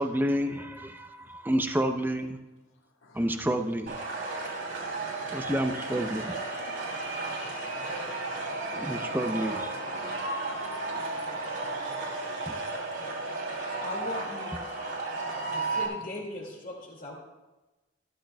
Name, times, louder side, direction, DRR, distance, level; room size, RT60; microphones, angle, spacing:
voice 1, 0.0-2.4 3.1-4.0 5.3-6.3 8.7-9.7 12.5-12.6, right 1 dB, 10° right, 6 dB, 0.6 m, -29 dB
voice 2, 3.0-3.7 4.4-5.9 6.6-6.8 7.1-9.3 9.9-10.0 10.4-13.1 13.9-14.1 15.2-16.2, left 2 dB, 75° left, 1 dB, 1.5 m, -56 dB
sound 1, 3.9-15.9, right 3 dB, 70° right, 2.9 m, -34 dB
voice 3, 12.7-13.2 13.8-14.5 15.5-17.2, left 1 dB, 40° left, -3 dB, 2.2 m, -39 dB
14.0 x 13.0 x 2.3 m, 1.1 s
head